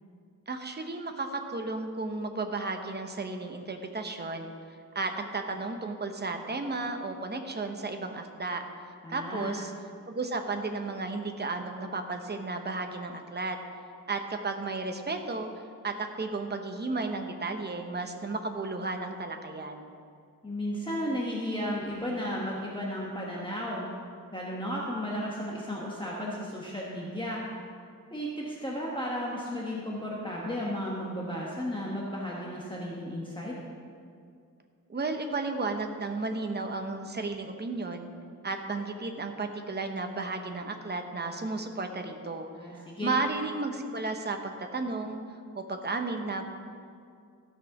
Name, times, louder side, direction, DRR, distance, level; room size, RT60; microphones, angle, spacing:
voice 1, 0.5-4.5 4.9-8.6 9.1-9.7 10.1-13.6 14.1-15.5 15.8-19.9 34.9-38.1 38.4-42.5 43.0-45.2 45.5-46.5, right 3 dB, 30° right, 5 dB, 0.9 m, -33 dB
voice 2, 9.0-9.6 20.4-23.9 24.3-27.4 28.1-33.5 42.6-43.1, equal, 15° left, -4 dB, 1.2 m, -34 dB
14.0 x 6.4 x 5.9 m, 2.3 s
wide cardioid pair, 160°, 34 cm